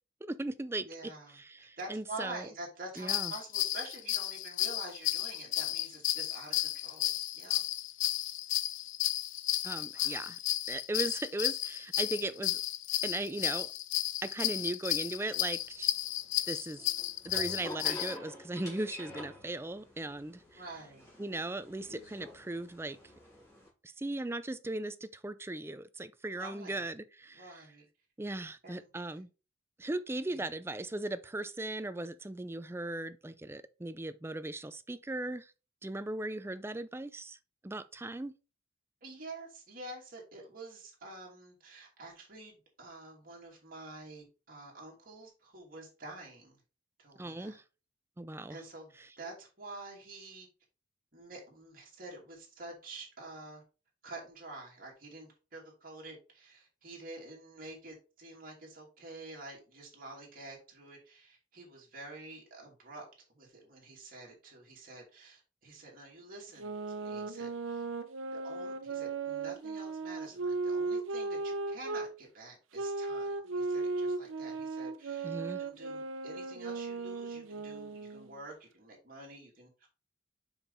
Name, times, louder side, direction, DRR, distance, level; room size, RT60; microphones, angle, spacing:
voice 1, 0.2-0.9 1.4-2.5 3.0-3.3 9.6-10.4 10.7-12.6 13.0-13.7 14.2-15.9 16.5-16.8 17.2-20.6 21.2-23.0 23.8-27.6 28.2-29.3 29.8-35.5 35.8-37.4 37.6-38.3 47.2-47.6 48.2-48.6 75.2-75.6, right 2 dB, 10° right, 0.4 m, -38 dB
voice 2, 0.8-7.7 9.9-10.2 14.4-14.6 20.6-21.1 26.3-26.8 27.3-27.9 28.6-28.9 30.3-30.4 39.0-46.6 47.0-47.6 48.5-50.5 51.1-53.6 54.0-67.9 68.3-79.9, right 2 dB, 45° right, 2.8 m, -48 dB
sound 1, 3.0-18.1, left 14 dB, 75° left, 0.5 m, -33 dB
sound 2, 15.1-23.7, left 1 dB, 15° left, 3.5 m, -49 dB
sound 3, 66.6-72.1 72.7-78.3, right 3 dB, 85° right, 0.8 m, -36 dB
7.1 x 5.4 x 3.5 m
head